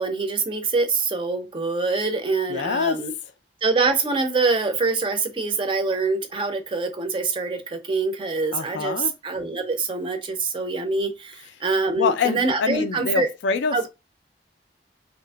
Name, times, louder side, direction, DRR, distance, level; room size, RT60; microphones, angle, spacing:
voice 1, 0.0-3.1 3.6-13.3 13.7-13.9, right 3 dB, 30° right, 0.4 m, -25 dB
voice 2, 2.5-3.0 8.5-9.1 12.0-13.9, left 5 dB, 90° left, 0.4 m, -25 dB
2.8 x 2.4 x 2.2 m
head